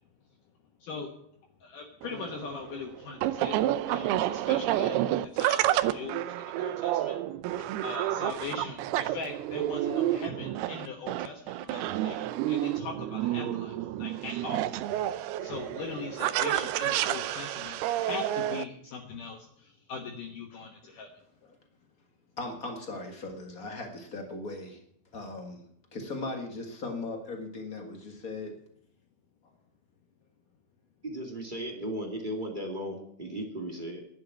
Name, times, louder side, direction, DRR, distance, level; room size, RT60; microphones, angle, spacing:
voice 1, 1.6-5.0 5.3-7.2 7.8-13.7 14.0-15.0 15.4-21.1, left 5 dB, 65° left, 2 dB, 2.5 m, -41 dB
sound 1, 2.0-18.6, right 13 dB, 85° right, 2.6 m, -30 dB
voice 2, 22.4-24.8 25.1-28.5, left 2 dB, 85° left, 3 dB, 0.7 m, -38 dB
voice 3, 31.0-34.1, right 1 dB, 25° right, 2 dB, 1.0 m, -36 dB
11.5 x 8.7 x 9.1 m, 0.71 s
omnidirectional pair, 4.5 m